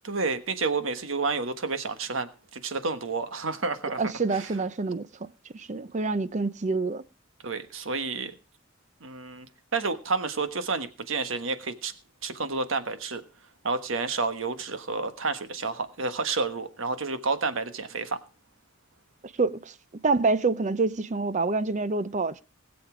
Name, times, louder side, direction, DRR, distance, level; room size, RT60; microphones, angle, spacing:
voice 1, 0.0-4.0 4.3-4.5 7.4-8.3 9.0-9.5 9.7-11.9 12.2-13.2 13.6-18.2, right 4 dB, 75° right, 1.3 m, -30 dB
voice 2, 4.0-5.1 5.5-7.0 19.4-19.7 20.0-22.4, right 3 dB, 35° right, 0.6 m, -26 dB
20.0 x 7.1 x 4.9 m
head